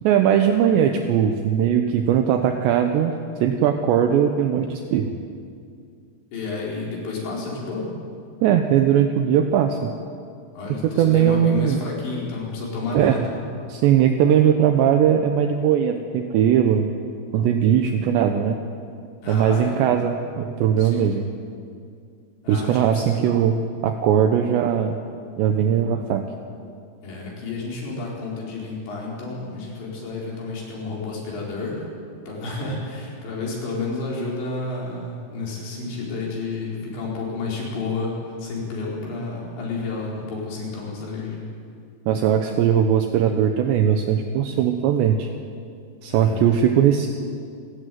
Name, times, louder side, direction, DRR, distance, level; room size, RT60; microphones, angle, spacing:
voice 1, 0.0-3.1 3.4-5.1 8.4-9.9 10.8-11.8 12.9-13.2 13.7-16.9 17.3-18.6 19.3-21.3 22.5-25.0 25.4-26.2 42.1-45.3 46.0-47.1, right 9 dB, 75° right, 5 dB, 3.0 m, -19 dB
voice 2, 6.3-7.9 10.5-13.3 19.2-19.8 20.8-21.1 22.4-23.4 27.0-31.8 32.3-41.4 46.1-46.4, left 3 dB, 70° left, -3 dB, 7.0 m, -30 dB
29.0 x 13.0 x 9.4 m, 2.3 s
omnidirectional pair, 5.4 m